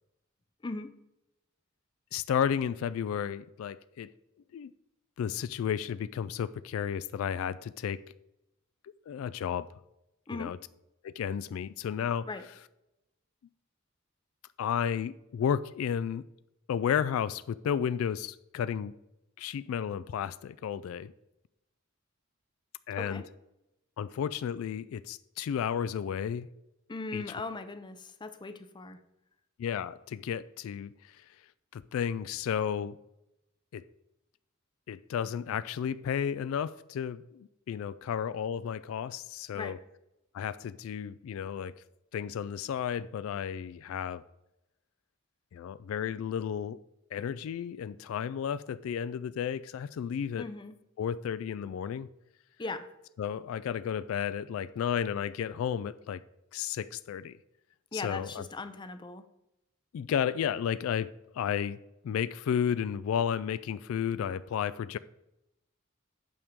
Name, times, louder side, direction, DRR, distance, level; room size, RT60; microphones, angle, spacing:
voice 1, 2.1-4.1 4.5-4.7 5.2-8.1 9.1-9.7 10.3-10.6 11.0-12.3 14.6-16.3 16.7-18.9 19.4-21.1 22.9-23.2 24.0-26.5 27.1-27.2 29.6-30.9 31.7-33.0 33.7-33.8 34.9-39.8 40.3-41.8 42.1-44.2 45.5-46.8 47.1-50.5 51.0-52.1 53.2-56.2 56.5-57.4 57.9-58.4 59.9-61.8 62.0-65.0, left 8 dB, 75° left, 0.3 m, -32 dB
voice 2, 26.9-29.0 39.5-39.8 50.4-50.8 52.6-52.9 57.9-59.2, left 3 dB, 20° left, 0.5 m, -39 dB
8.6 x 3.6 x 6.6 m
head